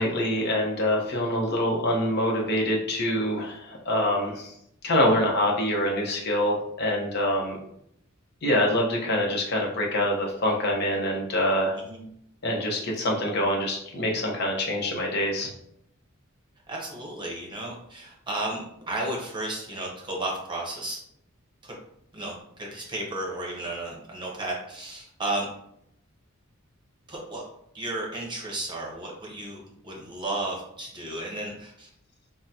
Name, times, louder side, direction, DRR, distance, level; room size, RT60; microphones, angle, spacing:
voice 1, 0.0-4.5 4.8-7.6 8.4-11.7 12.4-15.5, left 1 dB, 50° left, -1 dB, 0.7 m, -25 dB
voice 2, 16.7-21.0 21.6-21.8 22.1-25.5 27.1-27.4 27.7-31.9, right 2 dB, 20° right, -2 dB, 0.8 m, -33 dB
3.6 x 2.1 x 2.7 m, 0.73 s
head